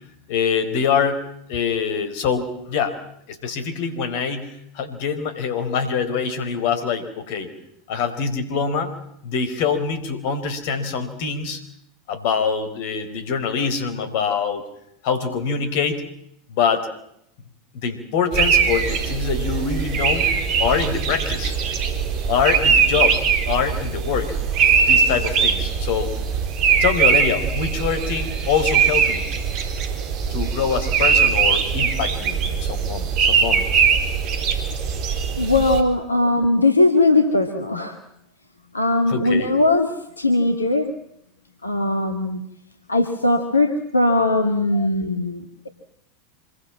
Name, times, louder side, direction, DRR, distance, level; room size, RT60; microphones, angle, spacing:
voice 1, 0.3-1.2 1.5-3.0 3.3-7.5 7.9-8.9 9.2-11.6 12.1-14.6 15.0-16.0 16.5-16.9 17.7-20.3 20.6-21.6 22.3-23.2 23.5-24.3 24.8-26.1 26.8-29.2 30.3-33.6 36.2-36.3 39.1-39.5 44.7-44.9, left 6 dB, 55° left, 10 dB, 4.6 m, -24 dB
sound 1, 18.3-35.8, right 6 dB, 45° right, 4.2 m, -21 dB
voice 2, 35.4-38.0 38.7-39.9 40.2-40.9 41.6-42.4 42.9-45.7, left 2 dB, 85° left, 6 dB, 2.1 m, -19 dB
27.0 x 23.0 x 7.4 m, 0.77 s
figure-of-eight pair, 85°, 0 cm